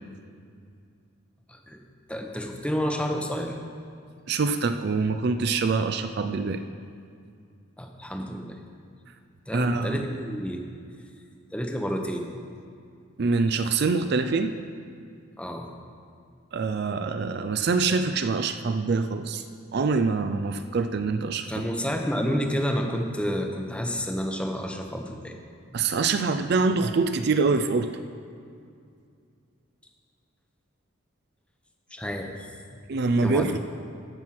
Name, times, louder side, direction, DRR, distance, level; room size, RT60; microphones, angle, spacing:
voice 1, 1.5-1.8 2.1-3.5 7.8-8.6 9.5-10.6 11.5-12.3 15.4-15.7 21.5-25.3 31.9-32.5 33.2-33.6, equal, 5° left, 3 dB, 0.8 m, -29 dB
voice 2, 4.3-6.6 9.5-10.0 13.2-14.5 16.5-19.4 19.7-21.5 25.7-27.9 32.9-33.6, right 4 dB, 50° right, 9 dB, 0.4 m, -25 dB
14.5 x 6.2 x 5.8 m, 2.3 s
head